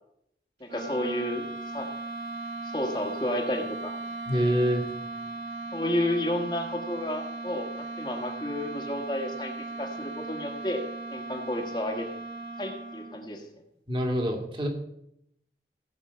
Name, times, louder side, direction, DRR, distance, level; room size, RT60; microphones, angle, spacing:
voice 1, 0.6-1.4 1.7-1.9 2.6-4.0 5.7-7.7 8.0-9.5 9.8-10.8 11.1-12.1 12.6-13.4, left 1 dB, 25° left, 2 dB, 1.5 m, -31 dB
sound 1, 0.6-13.4, right 2 dB, 75° right, 2.7 m, -38 dB
voice 2, 4.3-4.8 13.9-14.7, equal, 30° right, 2 dB, 2.2 m, -25 dB
16.0 x 5.9 x 6.8 m, 0.75 s
head